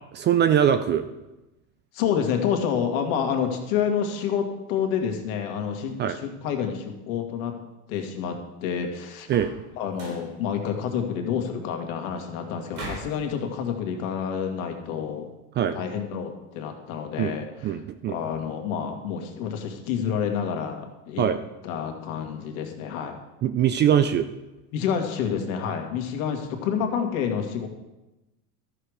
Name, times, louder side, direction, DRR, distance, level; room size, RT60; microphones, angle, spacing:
voice 1, 0.1-1.0 6.0-6.2 9.3-9.5 15.6-15.8 17.2-17.4 17.6-18.2 21.2-21.4 23.4-24.3, right 9 dB, 25° right, 11 dB, 0.4 m, -22 dB
voice 2, 1.9-7.5 7.9-9.3 9.8-15.3 15.7-17.7 18.1-21.2 21.6-23.2 24.7-27.7, left 7 dB, 70° left, 3 dB, 2.0 m, -28 dB
sound 1, 9.2-9.6 9.9-10.3 12.7-13.2, right 2 dB, 90° right, 3.9 m, -38 dB
13.0 x 6.6 x 5.0 m, 0.99 s
supercardioid pair, 120°, 43 cm